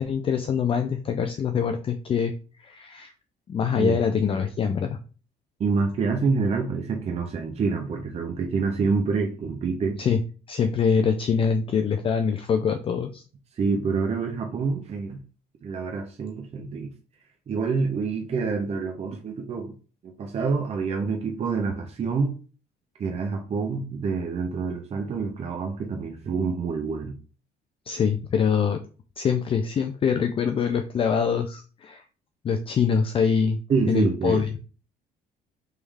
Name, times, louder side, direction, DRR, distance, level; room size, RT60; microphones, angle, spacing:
voice 1, 0.0-3.1 3.5-5.0 10.0-10.2 10.5-13.2 27.9-28.8 29.2-32.0 32.4-33.6 33.9-34.5, left 6 dB, 35° left, 6 dB, 0.4 m, -24 dB
voice 2, 5.6-10.0 13.6-15.2 15.6-16.9 17.5-19.7 20.0-22.4 23.0-27.1 33.7-34.4, right 4 dB, 40° right, 3 dB, 0.7 m, -27 dB
3.3 x 3.1 x 3.5 m, 0.37 s
cardioid pair, 110°, 17 cm